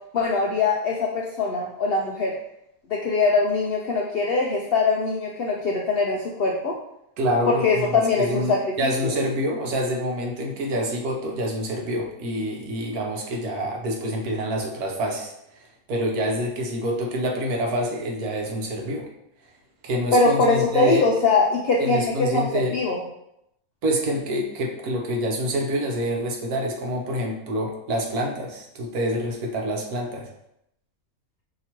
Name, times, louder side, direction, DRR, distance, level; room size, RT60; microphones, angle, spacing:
voice 1, 0.1-2.3 2.9-6.7 7.5-9.1 20.1-22.5 22.7-23.0, left 3 dB, 75° left, -1 dB, 0.5 m, -22 dB
voice 2, 7.2-15.3 15.9-19.1 19.8-21.1 21.8-22.8 23.8-30.3, equal, 85° right, 1 dB, 1.3 m, -27 dB
5.8 x 2.8 x 2.9 m, 0.80 s
omnidirectional pair, 1.5 m